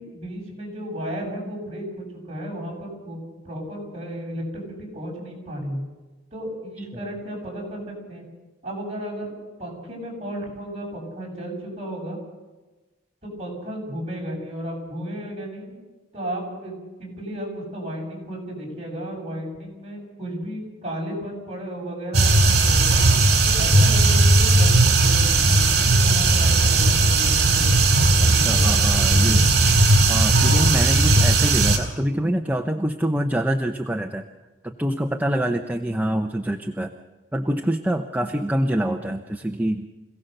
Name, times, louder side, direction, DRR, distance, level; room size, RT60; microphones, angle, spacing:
voice 1, 0.0-3.2 3.4-5.8 6.3-8.2 8.6-9.3 9.6-12.2 13.2-15.7 16.1-23.0 23.4-29.2 29.5-29.6, equal, 30° right, -2 dB, 7.5 m, -34 dB
sound 1, 22.1-31.8, right 2 dB, 55° right, 3.8 m, -17 dB
voice 2, 28.2-29.5 30.1-34.2 34.6-36.9 37.3-39.9, right 1 dB, 10° right, 4 dB, 0.7 m, -25 dB
26.5 x 17.0 x 6.7 m, 1.2 s
head